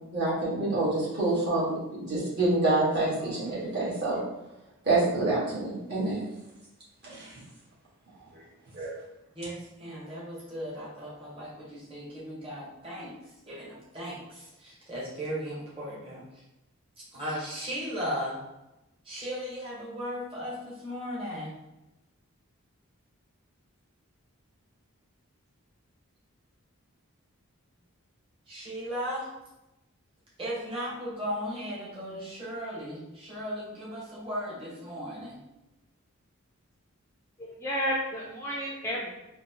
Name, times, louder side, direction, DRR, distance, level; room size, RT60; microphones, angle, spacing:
voice 1, 0.0-4.2 4.8-6.2 7.0-7.3 8.3-8.4 8.7-9.0, right 2 dB, 45° right, -8 dB, 1.4 m, -27 dB
voice 2, 9.3-13.2 13.5-16.2 17.1-18.4 19.0-21.5 28.5-29.3 30.4-35.4, equal, 25° right, -7 dB, 0.9 m, -36 dB
voice 3, 37.4-39.1, equal, 10° left, -5 dB, 0.3 m, -31 dB
3.9 x 2.1 x 2.7 m, 0.94 s
head